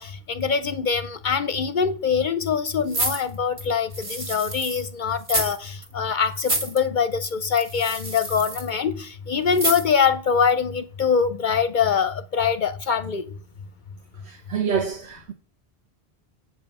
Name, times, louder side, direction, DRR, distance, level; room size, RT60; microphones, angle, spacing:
voice 1, 0.0-13.3, left 6 dB, 55° left, 0.7 m, -23 dB
sound 1, 2.9-4.9 5.2-5.6 5.8-5.9 6.4-6.8 7.6-8.7 9.5-10.0 10.5-10.6, right 2 dB, 30° right, 1.5 m, -28 dB
voice 2, 14.3-15.3, right 7 dB, 85° right, 1.2 m, -27 dB
7.9 x 5.3 x 5.9 m
omnidirectional pair, 1.1 m